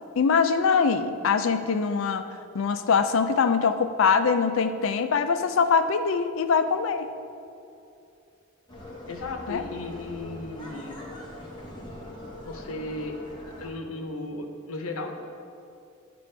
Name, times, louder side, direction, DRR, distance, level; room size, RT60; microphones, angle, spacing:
voice 1, 0.2-2.2 2.5-7.1 9.5-9.6, left 5 dB, 65° left, 9 dB, 0.4 m, -23 dB
sound 1, 8.7-13.7, left 1 dB, 20° left, 1.1 m, -42 dB
voice 2, 9.1-11.1 12.4-13.2 13.6-15.1, left 2 dB, 85° left, 3 dB, 0.8 m, -35 dB
9.4 x 5.9 x 3.3 m, 2.6 s
head